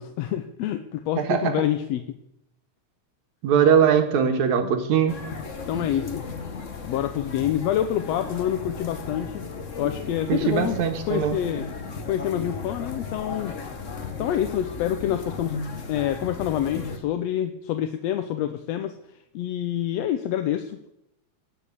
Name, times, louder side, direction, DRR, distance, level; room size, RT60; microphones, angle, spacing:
voice 1, 0.0-2.2 4.6-4.7 5.7-6.3 6.8-9.4 9.7-10.8 11.1-11.6 12.1-13.6 14.2-15.5 15.9-19.0 19.3-20.9, left 11 dB, 70° left, 8 dB, 1.8 m, -27 dB
voice 2, 1.2-1.5 3.4-5.2 10.3-11.4, right 8 dB, 70° right, 6 dB, 2.8 m, -21 dB
sound 1, 5.1-17.0, left 4 dB, 50° left, 0.9 m, -35 dB
18.5 x 6.6 x 8.4 m, 0.80 s
omnidirectional pair, 3.4 m